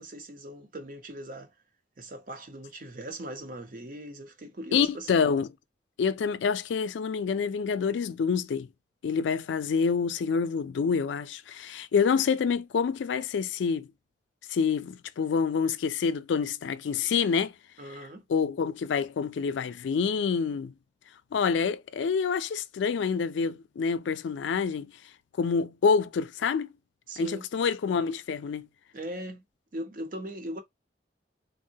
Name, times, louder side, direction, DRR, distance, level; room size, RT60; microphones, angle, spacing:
voice 1, 0.0-1.5 2.0-5.3 17.8-18.2 27.1-27.5 28.9-29.4 29.7-30.6, right 1 dB, 50° right, 0.7 m, -39 dB
voice 2, 4.7-5.5 6.0-8.7 9.0-13.9 14.5-17.5 18.3-20.7 21.3-24.9 25.4-26.7 27.2-28.7, left 6 dB, 85° left, 0.3 m, -27 dB
3.6 x 2.0 x 2.7 m
head